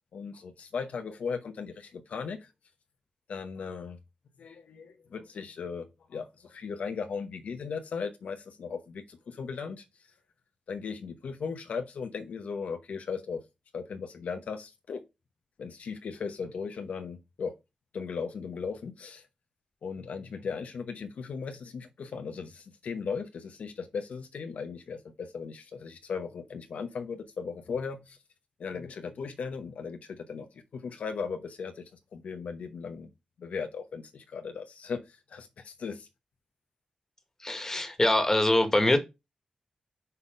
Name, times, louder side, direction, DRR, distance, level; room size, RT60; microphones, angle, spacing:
voice 1, 0.1-2.5 3.3-4.0 4.4-9.8 10.7-13.4 13.7-15.0 15.6-17.5 17.9-19.2 19.8-28.2 28.6-30.5 30.7-31.8 32.1-33.1 33.4-36.1, left 5 dB, 80° left, 0.9 m, -37 dB
voice 2, 37.4-39.0, left 1 dB, 20° left, 1.7 m, -24 dB
5.6 x 4.1 x 5.0 m
cardioid pair, 75°, 2 cm